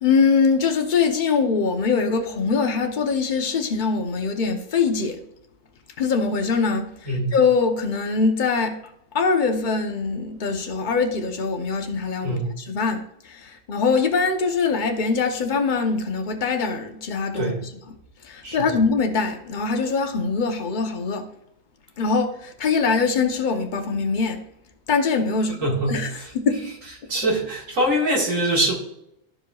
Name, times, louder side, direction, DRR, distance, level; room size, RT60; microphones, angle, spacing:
voice 1, 0.0-5.2 6.0-6.9 7.3-8.8 9.1-17.7 18.2-21.3 22.0-24.4 24.9-26.7 27.2-27.3, left 5 dB, 40° left, 0.9 m, -23 dB
voice 2, 12.2-12.5 17.4-17.6 18.4-18.7 25.6-26.3 27.1-28.7, right 1 dB, 75° right, 2.2 m, -23 dB
13.0 x 5.0 x 2.3 m
omnidirectional pair, 1.4 m